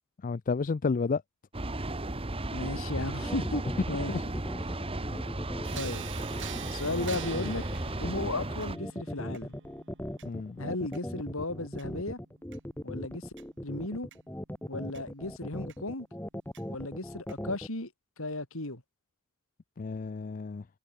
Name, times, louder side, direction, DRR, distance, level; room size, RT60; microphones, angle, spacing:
voice 1, 0.2-1.2 4.1-4.2 10.2-10.6 19.8-20.6, left 4 dB, 40° left, 0.4 m, -31 dB
sound 1, 1.5-8.8, right 2 dB, 25° right, 1.6 m, -35 dB
voice 2, 2.5-3.6 3.9-4.1 5.7-6.1 6.7-9.5 10.6-12.2 12.8-13.3 13.6-14.1 14.7-16.1 16.7-17.9 18.2-18.8, left 2 dB, 65° left, 3.6 m, -35 dB
sound 2, 3.0-17.7, equal, 10° left, 1.7 m, -39 dB
sound 3, 5.6-15.0 15.7-15.8 16.5-16.6 17.3-17.4, right 9 dB, 55° right, 3.3 m, -48 dB
head